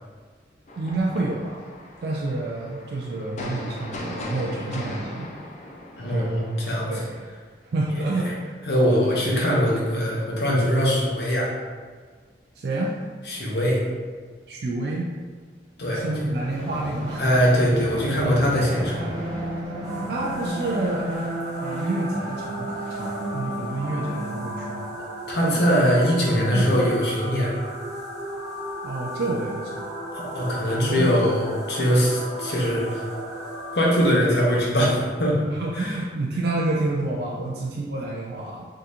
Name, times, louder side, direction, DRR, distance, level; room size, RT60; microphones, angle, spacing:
sound 1, 0.7-7.2, left 1 dB, 40° left, 0.4 m, -38 dB
voice 1, 0.8-1.7 2.0-5.3 6.1-6.3 6.9-7.2 7.7-8.3 12.6-12.9 14.5-15.1 15.9-17.2 20.1-21.1 21.6-24.9 25.4-25.6 26.4-26.7 28.8-30.0 30.7-31.1 35.5-38.6, right 2 dB, 60° right, -3 dB, 0.3 m, -28 dB
voice 2, 6.0-6.9 7.9-8.0 8.7-11.5 13.3-13.8 15.8-16.3 17.2-19.1 25.3-27.6 30.1-33.0 33.7-36.0, equal, 65° left, -4 dB, 0.8 m, -22 dB
sound 2, 15.9-25.1, right 1 dB, 10° left, 1.2 m, -32 dB
sound 3, 19.8-34.0, equal, 20° right, 0.7 m, -35 dB
3.6 x 2.8 x 2.4 m, 1.5 s
head